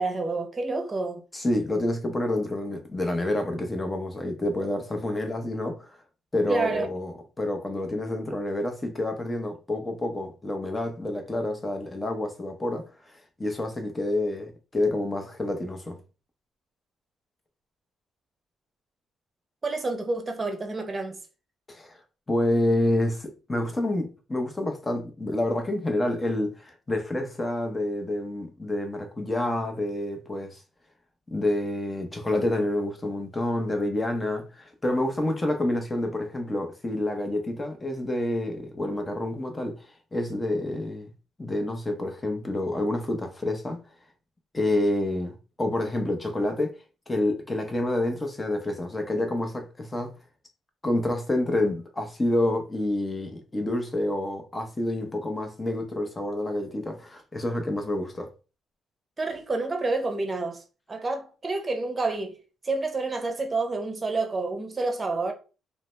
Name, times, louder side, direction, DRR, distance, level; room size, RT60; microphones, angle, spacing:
voice 1, 0.0-1.2 6.5-6.9 19.6-21.2 59.2-62.3 62.6-65.3, right 3 dB, 30° right, 0.7 m, -29 dB
voice 2, 1.3-6.0 6.3-16.0 21.7-22.0 22.3-30.6 31.3-41.1 41.4-43.8 44.5-46.7 47.1-50.1 50.8-58.3, left 1 dB, 20° left, 0.8 m, -28 dB
2.6 x 2.1 x 3.1 m
cardioid pair, 70°, 0 cm